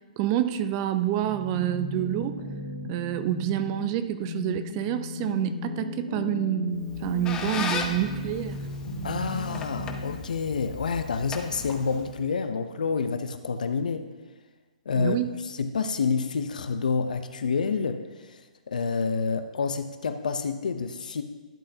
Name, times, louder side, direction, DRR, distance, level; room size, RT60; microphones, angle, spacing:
voice 1, 0.2-2.4 2.9-8.7 15.0-15.3, right 12 dB, 35° right, 11 dB, 0.5 m, -28 dB
sound 1, 1.2-10.0, left 2 dB, 50° left, 3.0 m, -36 dB
Squeak, 6.8-12.2, left 5 dB, 15° left, 0.7 m, -37 dB
voice 2, 9.0-14.1 14.9-15.2 15.4-18.4 18.7-21.2, left 5 dB, 85° left, 9 dB, 0.6 m, -28 dB
12.0 x 7.8 x 2.7 m, 1.3 s
hypercardioid pair, 140°, 4 cm